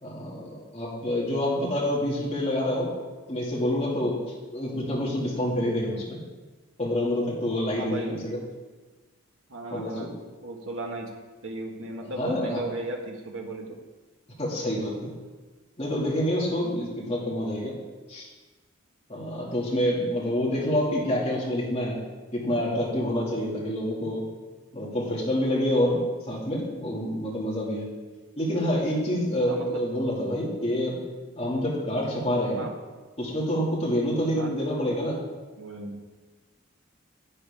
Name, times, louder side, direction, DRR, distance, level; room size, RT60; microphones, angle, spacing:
voice 1, 0.0-2.9 3.3-4.2 4.5-6.2 6.8-8.4 9.7-10.1 12.2-12.6 14.4-15.1 15.8-17.7 18.1-18.3 19.1-22.0 22.3-24.3 24.7-26.0 26.3-27.9 28.4-31.0 31.4-32.6 33.2-35.2, left 1 dB, 30° left, -5 dB, 2.3 m, -27 dB
voice 2, 7.8-8.2 9.5-10.1 10.4-11.1 11.4-13.8 29.5-29.8 30.2-30.3 32.6-32.7 34.3-34.5 35.6-36.0, right 2 dB, 70° right, 1 dB, 1.6 m, -36 dB
11.0 x 9.0 x 3.6 m, 1.3 s
head